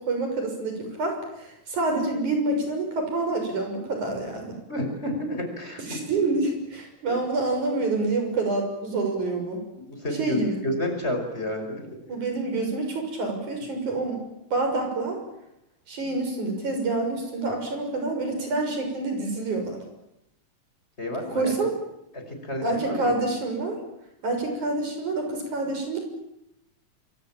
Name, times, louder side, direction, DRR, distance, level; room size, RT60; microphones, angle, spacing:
voice 1, 0.0-4.6 5.9-9.6 10.2-10.6 12.1-14.2 14.5-15.2 15.9-19.8 21.3-21.7 22.6-23.8 24.2-26.0, right 2 dB, 85° right, 4 dB, 7.8 m, -27 dB
voice 2, 4.7-6.0 9.8-12.0 21.0-21.5 22.1-23.1, left 1 dB, 20° left, 4 dB, 5.6 m, -30 dB
26.0 x 24.5 x 9.0 m, 0.82 s
omnidirectional pair, 3.3 m